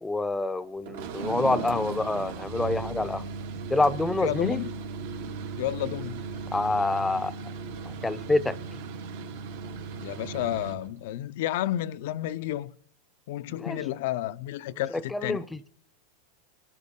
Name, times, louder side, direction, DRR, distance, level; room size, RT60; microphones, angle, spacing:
voice 1, 0.0-3.2 3.7-4.6 6.5-7.3 7.9-8.6 13.6-13.8 15.1-15.7, left 2 dB, 10° left, 0.6 m, -27 dB
sound 1, 0.8-10.9, right 4 dB, 75° right, 1.9 m, -36 dB
voice 2, 4.2-4.7 5.6-6.2 10.0-12.7 13.3-15.4, left 13 dB, 65° left, 0.6 m, -31 dB
25.0 x 12.0 x 3.7 m
supercardioid pair, 125°, 0 cm